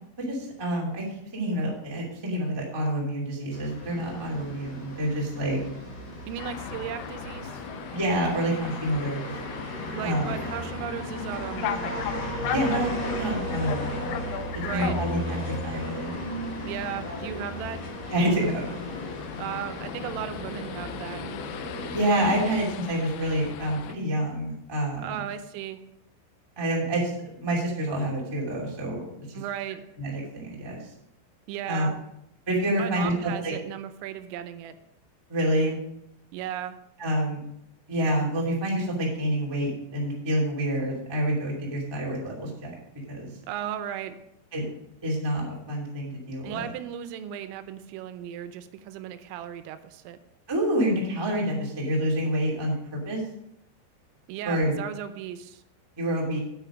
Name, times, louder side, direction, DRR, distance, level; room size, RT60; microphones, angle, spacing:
voice 1, 0.3-1.0 1.3-5.6 7.9-9.3 10.0-10.3 12.5-14.2 14.7-16.2 18.1-18.8 21.9-25.2 26.5-29.0 30.0-30.8 31.7-31.9 32.5-33.5 35.3-35.8 37.0-37.4 37.9-42.8 43.1-43.3 44.5-44.6 45.0-46.7 50.5-53.2 54.4-54.7 56.0-56.4, right 1 dB, 15° right, -4 dB, 0.9 m, -27 dB
sound 1, 3.5-22.5, equal, 45° left, 2.6 m, -35 dB
voice 2, 6.3-7.6 9.9-12.1 14.6-15.0 16.6-17.9 19.4-21.3 25.0-25.8 29.3-29.8 31.5-32.0 32.7-34.8 36.3-36.8 43.5-44.2 46.4-50.2 54.3-55.6, right 10 dB, 85° right, 10 dB, 3.3 m, -36 dB
sound 2, 6.4-23.9, left 10 dB, 90° left, 2.6 m, -38 dB
9.1 x 8.9 x 5.1 m, 0.80 s
omnidirectional pair, 5.9 m